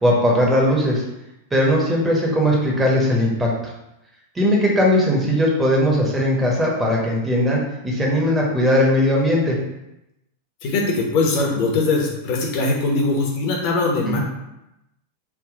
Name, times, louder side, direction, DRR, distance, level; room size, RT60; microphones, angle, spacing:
voice 1, 0.0-1.0 1.5-3.5 4.3-9.6 14.1-14.2, equal, 10° right, -3 dB, 1.1 m, -19 dB
voice 2, 10.6-14.2, left 3 dB, 45° left, -1 dB, 0.9 m, -21 dB
3.5 x 2.6 x 3.7 m, 0.90 s
figure-of-eight pair, 90°, 0 cm